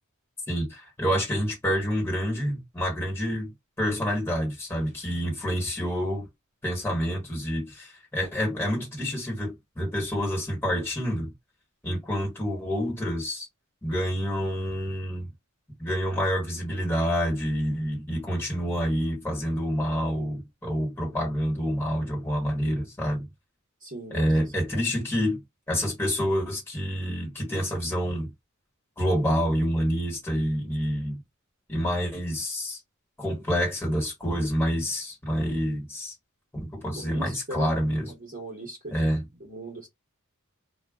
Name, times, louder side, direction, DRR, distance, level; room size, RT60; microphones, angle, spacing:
voice 1, 0.5-3.5 3.8-6.3 6.6-11.3 11.8-13.5 13.8-15.3 15.8-23.3 24.1-25.4 25.7-28.3 29.0-31.2 31.7-32.8 33.2-36.1 36.5-38.1 38.9-39.3, equal, 10° left, 1.5 m, -28 dB
voice 2, 23.8-24.3 36.9-37.7 38.0-39.9, right 1 dB, 40° right, 1.1 m, -39 dB
2.3 x 2.3 x 3.6 m
head